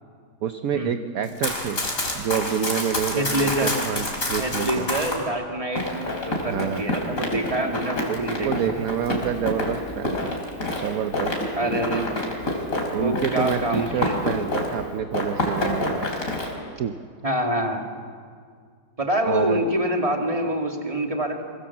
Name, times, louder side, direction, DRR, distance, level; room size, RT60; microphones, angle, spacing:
voice 1, 0.4-1.8 2.1-4.9 6.4-6.8 8.1-10.4 10.8-11.8 12.9-16.1 16.8-17.0 19.3-19.6, right 9 dB, 60° right, 8 dB, 1.1 m, -28 dB
Run, 1.2-5.2 5.8-14.8 15.1-16.5, left 1 dB, 50° left, 4.4 m, -28 dB
voice 2, 3.1-3.7 4.4-8.9 11.5-12.2 13.0-14.4 17.2-17.9 19.0-21.4, right 1 dB, 20° right, 2 dB, 2.3 m, -26 dB
24.5 x 24.0 x 7.3 m, 2.1 s
omnidirectional pair, 1.9 m